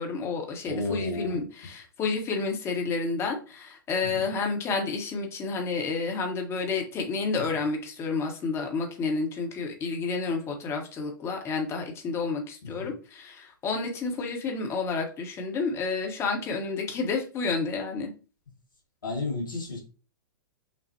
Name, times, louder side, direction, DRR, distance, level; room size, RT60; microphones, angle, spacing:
voice 1, 0.0-18.1, left 4 dB, 20° left, 1.1 m, -30 dB
voice 2, 0.6-1.4 4.1-4.2 7.3-7.4 12.6-12.9 19.0-19.8, left 2 dB, 70° left, 1.6 m, -32 dB
6.1 x 2.4 x 2.9 m
figure-of-eight pair, 105°, 11 cm